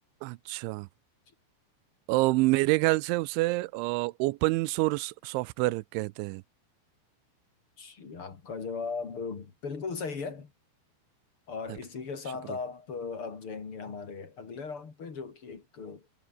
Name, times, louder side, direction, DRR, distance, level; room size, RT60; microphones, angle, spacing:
voice 1, 0.2-0.9 2.1-6.4 11.7-11.8 12.5-12.6, right 22 dB, 90° right, 3.0 m, -27 dB
voice 2, 7.8-10.5 11.5-16.0, left 5 dB, 35° left, 3.0 m, -38 dB
omnidirectional pair, 5.3 m